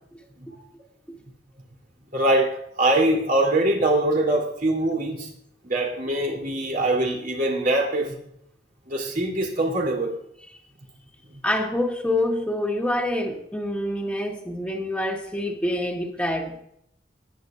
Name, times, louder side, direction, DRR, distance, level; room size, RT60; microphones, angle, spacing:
voice 1, 2.1-5.3 5.6-8.2 8.9-10.1, right 1 dB, 50° right, -1 dB, 3.5 m, -23 dB
voice 2, 11.4-16.6, left 1 dB, 5° left, 0 dB, 2.1 m, -26 dB
20.0 x 10.5 x 2.6 m, 0.73 s
head